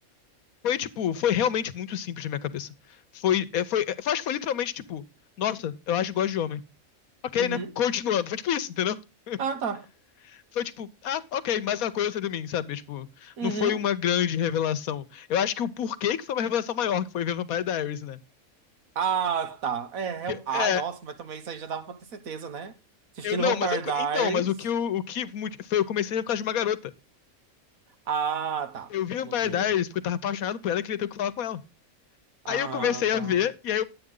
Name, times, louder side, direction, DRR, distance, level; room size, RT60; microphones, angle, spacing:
voice 1, 0.6-2.7 3.1-5.0 5.4-6.6 7.3-9.0 9.3-9.4 10.2-18.2 20.3-20.8 23.2-26.9 28.9-31.6 32.5-33.8, left 9 dB, 90° left, 1.3 m, -28 dB
voice 2, 7.4-7.7 9.4-9.9 13.4-13.8 18.9-22.7 23.1-24.5 28.1-28.9 29.2-29.7 32.4-33.4, right 6 dB, 80° right, 1.5 m, -31 dB
11.0 x 8.6 x 3.7 m
omnidirectional pair, 1.4 m